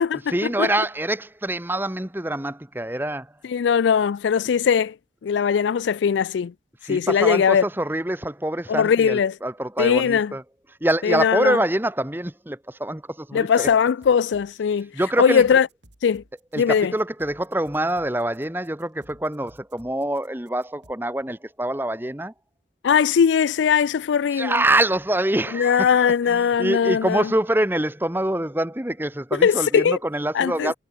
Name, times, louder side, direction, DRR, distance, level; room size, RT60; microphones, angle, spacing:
voice 1, 0.3-3.3 6.8-10.4 10.8-13.7 14.9-15.4 16.5-22.3 24.3-30.8, right 1 dB, 10° right, 1.2 m, -25 dB
voice 2, 3.5-4.9 5.2-6.5 6.9-7.6 8.7-9.4 9.8-10.3 11.0-11.6 13.3-14.9 15.2-15.7 16.0-16.2 16.6-16.9 22.8-24.6 25.5-27.3 29.3-30.0 30.3-30.7, left 7 dB, 90° left, 0.4 m, -20 dB
sound 1, 13.6-20.9, right 1 dB, 85° right, 6.0 m, -54 dB
head